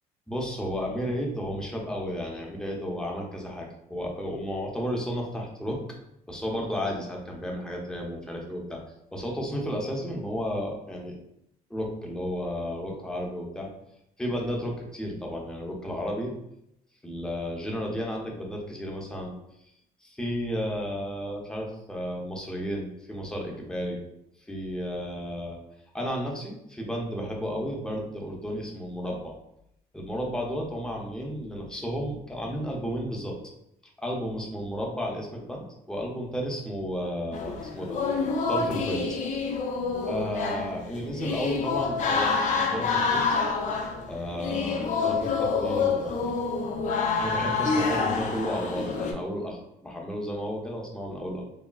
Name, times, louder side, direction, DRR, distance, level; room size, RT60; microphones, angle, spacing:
voice 1, 0.3-5.8 6.3-8.8 9.1-11.2 11.7-13.7 14.2-16.3 17.0-19.3 20.0-24.0 24.5-25.6 25.9-29.3 29.9-33.4 34.0-38.0 38.5-39.2 40.1-43.2 44.1-46.3 47.2-51.4, equal, 5° left, -1 dB, 0.6 m, -33 dB
sound 1, 37.3-49.1, left 4 dB, 45° left, 0.5 m, -27 dB
3.6 x 2.1 x 2.3 m, 0.79 s
cardioid pair, 110°, 17 cm